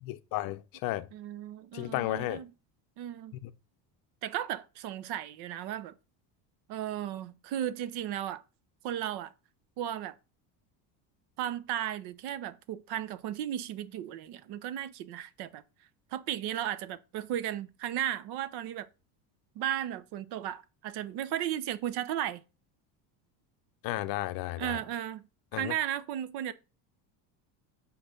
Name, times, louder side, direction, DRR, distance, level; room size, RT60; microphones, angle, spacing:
voice 1, 0.0-1.1 1.7-2.4 3.4-3.5 23.8-24.8 25.5-25.7, left 16 dB, 55° left, 0.6 m, -33 dB
voice 2, 1.1-2.5 3.0-3.4 4.2-5.9 6.7-8.4 8.8-9.3 9.8-10.1 11.4-15.6 16.1-18.9 19.6-22.4 24.6-25.2 25.5-26.5, right 11 dB, 60° right, 0.8 m, -35 dB
5.7 x 4.3 x 5.1 m
cardioid pair, 145°, 43 cm